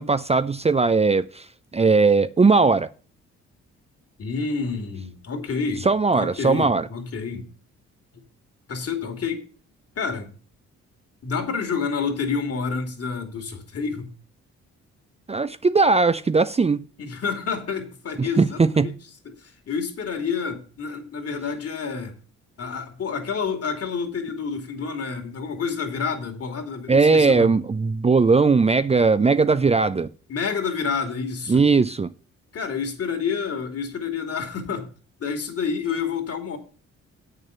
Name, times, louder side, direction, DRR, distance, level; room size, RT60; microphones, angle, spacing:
voice 1, 0.0-1.5 1.7-2.9 5.8-6.9 15.3-16.9 18.2-19.0 26.9-30.1 31.5-32.1, right 4 dB, 20° right, 0.6 m, -19 dB
voice 2, 4.2-5.9 6.1-7.5 8.7-9.4 9.9-10.3 11.2-14.1 17.0-18.9 19.2-22.1 22.6-27.6 30.3-31.6 32.5-34.9 35.2-36.6, left 5 dB, 55° left, 3.0 m, -29 dB
8.6 x 6.7 x 7.0 m
cardioid pair, 75°, 29 cm